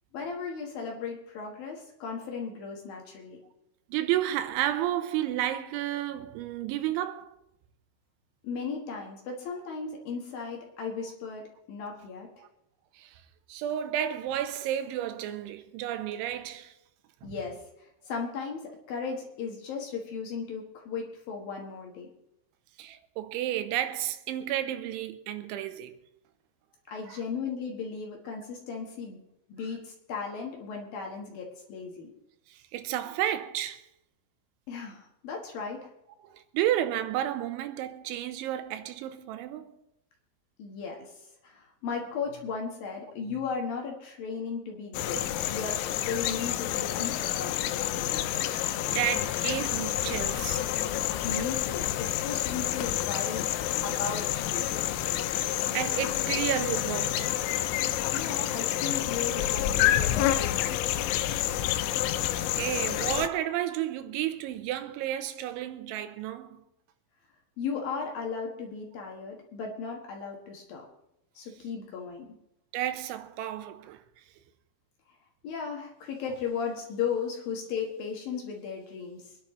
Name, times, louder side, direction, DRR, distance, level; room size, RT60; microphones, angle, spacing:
voice 1, 0.1-3.4 8.4-12.3 17.2-22.1 26.9-29.2 29.5-32.1 34.7-35.9 40.6-45.2 45.5-47.8 51.2-53.5 53.8-55.0 58.1-61.0 67.6-70.8 71.3-72.4 75.4-79.4, left 5 dB, 60° left, 2.7 m, -36 dB
voice 2, 3.9-7.4 12.4-12.5 13.0-13.2 13.5-16.7 17.2-17.3 22.8-25.9 26.9-27.2 32.5-33.8 36.2-39.8 48.5-50.7 54.7-54.9 55.4-57.3 62.6-66.6 72.7-74.0, right 12 dB, 85° right, 3.2 m, -32 dB
sound 1, 44.9-63.3, left 13 dB, 85° left, 3.0 m, -29 dB
25.0 x 10.5 x 3.2 m
omnidirectional pair, 5.4 m